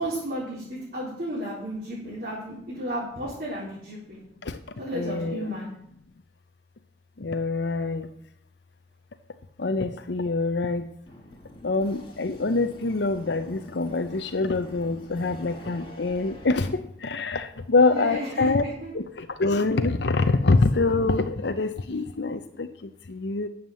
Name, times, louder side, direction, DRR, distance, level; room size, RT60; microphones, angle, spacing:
voice 1, 0.0-4.2 4.8-5.7 17.7-18.9, right 1 dB, 50° right, -8 dB, 4.2 m, -33 dB
voice 2, 4.9-5.4 7.2-8.1 9.6-10.8 11.6-16.7 17.0-18.6 18.9-19.0 19.4-22.7 23.2-23.5, left 3 dB, 75° left, 7 dB, 0.7 m, -25 dB
sound 1, 11.1-16.7, left 1 dB, 30° left, 2.8 m, -46 dB
10.5 x 7.4 x 7.5 m, 0.72 s
head